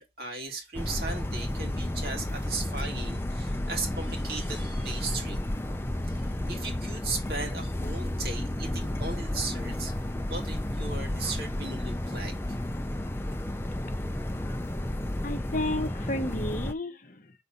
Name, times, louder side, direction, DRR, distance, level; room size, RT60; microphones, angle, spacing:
voice 1, 0.0-5.4 6.0-9.9 10.3-12.6, right 3 dB, 60° right, 2.4 m, -37 dB
sound 1, 0.7-16.7, left 1 dB, 15° left, 0.5 m, -32 dB
voice 2, 15.2-17.3, left 1 dB, 50° left, 0.9 m, -32 dB
5.9 x 4.0 x 5.6 m
head